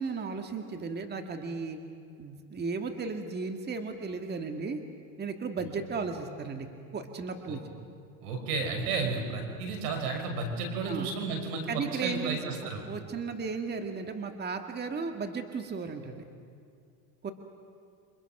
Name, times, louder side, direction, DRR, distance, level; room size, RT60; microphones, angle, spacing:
voice 1, 0.0-1.8 2.2-4.8 5.2-6.7 6.9-7.6 10.9-11.1 11.7-16.2 17.2-17.3, right 4 dB, 20° right, 5 dB, 1.9 m, -35 dB
voice 2, 8.2-12.8, right 4 dB, 85° right, 4 dB, 5.9 m, -32 dB
29.0 x 25.5 x 6.0 m, 2.4 s
supercardioid pair, 120°, 44 cm